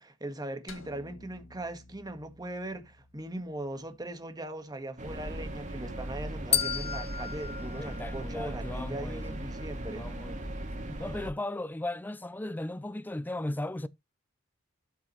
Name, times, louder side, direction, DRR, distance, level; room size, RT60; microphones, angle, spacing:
voice 1, 0.0-10.1, right 1 dB, 20° right, 1.7 m, -40 dB
sound 1, 0.7-5.1, left 2 dB, 90° left, 2.0 m, -54 dB
sound 2, 5.0-11.3, right 1 dB, 40° right, 2.5 m, -38 dB
sound 3, 6.5-8.8, left 8 dB, 30° left, 0.8 m, -33 dB
voice 2, 7.8-9.4 9.8-10.6 10.9-13.9, left 1 dB, 10° left, 0.4 m, -37 dB
12.0 x 6.0 x 3.2 m
head